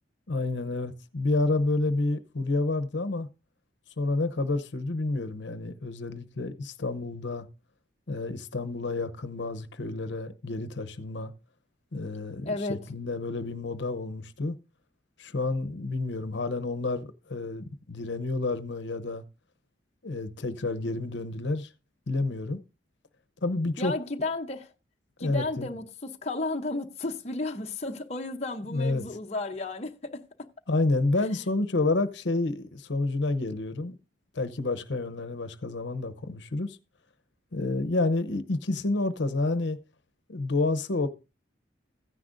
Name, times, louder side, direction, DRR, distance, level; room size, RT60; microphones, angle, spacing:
voice 1, 0.3-3.3 4.0-7.5 8.1-11.3 11.9-14.6 15.2-19.2 20.0-21.7 22.1-22.6 23.4-23.9 25.2-25.7 28.7-29.0 30.7-34.0 34.3-36.8 37.5-39.8 40.3-41.1, left 2 dB, 75° left, 0.8 m, -29 dB
voice 2, 12.4-12.8 23.8-24.7 25.2-30.5, left 2 dB, 35° left, 0.8 m, -33 dB
15.0 x 10.0 x 2.6 m
head